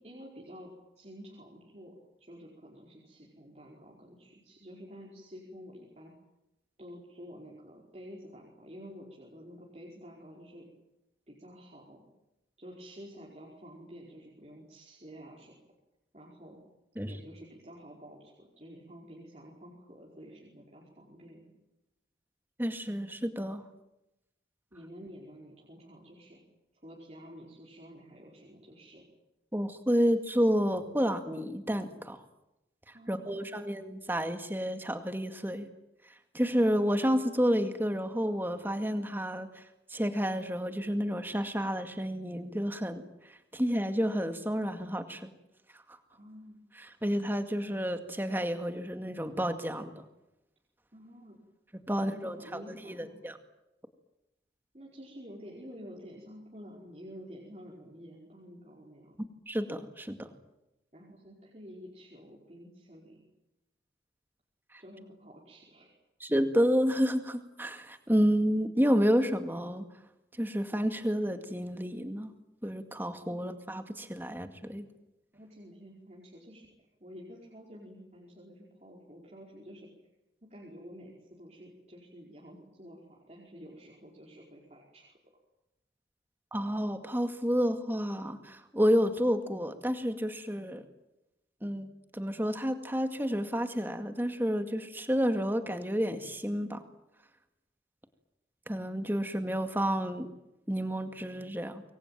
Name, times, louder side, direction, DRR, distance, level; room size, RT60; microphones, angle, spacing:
voice 1, 0.0-6.1 6.8-10.7 11.3-12.1 12.6-15.5 16.1-16.6 17.0-21.4 24.7-26.4 26.8-29.1 32.9-33.5 46.1-46.6 50.9-51.4 51.9-53.1 54.7-59.3 60.9-63.2 64.8-65.9 73.3-73.5 75.3-79.9 80.4-85.1, equal, 35° right, -3 dB, 5.0 m, -50 dB
voice 2, 22.6-23.6 29.5-32.2 33.1-35.7 36.3-39.6 39.9-43.0 43.5-45.3 45.9-46.0 46.8-49.9 51.9-53.4 59.5-60.3 66.2-69.8 70.4-72.3 72.6-74.9 86.5-90.8 91.6-91.9 92.1-96.8 98.7-100.3 100.7-101.8, equal, 10° right, 8 dB, 2.1 m, -30 dB
26.0 x 22.5 x 9.2 m, 0.92 s
head